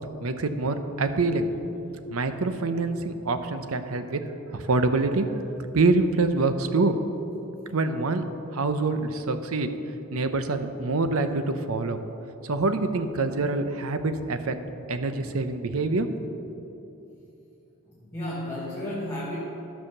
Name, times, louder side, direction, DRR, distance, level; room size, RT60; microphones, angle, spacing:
voice 1, 0.2-1.5 2.1-4.2 4.5-5.3 5.7-7.0 7.7-8.2 8.5-9.7 10.1-12.0 12.4-14.6 14.9-16.1, right 3 dB, 80° right, 9 dB, 0.7 m, -25 dB
voice 2, 15.1-15.4 17.9-19.4, left 1 dB, 15° left, -6 dB, 1.4 m, -34 dB
12.5 x 5.7 x 6.6 m, 2.9 s
head